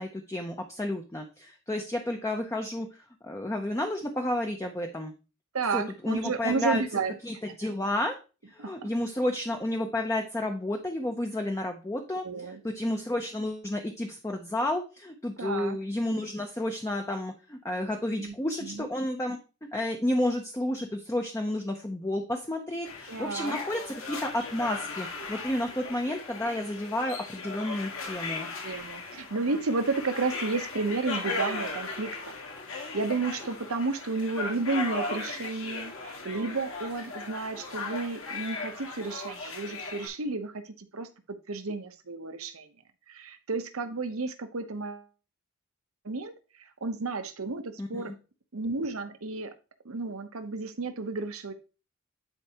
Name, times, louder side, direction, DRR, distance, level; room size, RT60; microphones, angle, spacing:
voice 1, 0.0-2.9 3.2-5.1 5.7-6.8 7.2-8.1 8.5-12.2 12.6-19.4 19.7-28.5 47.8-48.1, left 1 dB, 15° left, 3 dB, 0.6 m, -31 dB
voice 2, 5.5-7.1 7.4-7.6 8.6-8.9 12.2-12.6 15.4-15.8 18.2-18.3 18.6-18.9 23.1-23.6 28.6-32.3 32.7-41.1 41.5-42.7 43.1-45.0 46.0-48.1 48.5-49.5 49.8-51.5, right 3 dB, 75° right, 8 dB, 0.9 m, -32 dB
sound 1, 22.8-40.1, left 3 dB, 65° left, 1.9 m, -37 dB
10.5 x 4.5 x 2.9 m, 0.33 s
head